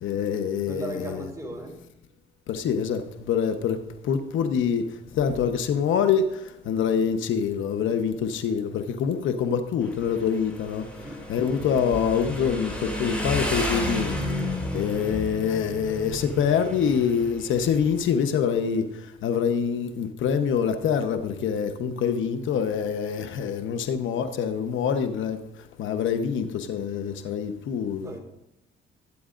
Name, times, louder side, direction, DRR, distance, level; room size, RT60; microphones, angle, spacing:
voice 1, 0.0-1.2 2.5-10.9 11.3-25.4 25.8-28.1, left 7 dB, 75° left, 1.0 m, -25 dB
voice 2, 0.7-1.8 10.9-11.2 28.0-28.2, right 2 dB, 15° right, 4.3 m, -36 dB
Motorcycle, 9.8-18.0, left 1 dB, 5° left, 4.2 m, -32 dB
20.0 x 9.5 x 2.6 m
cardioid pair, 90°, 20 cm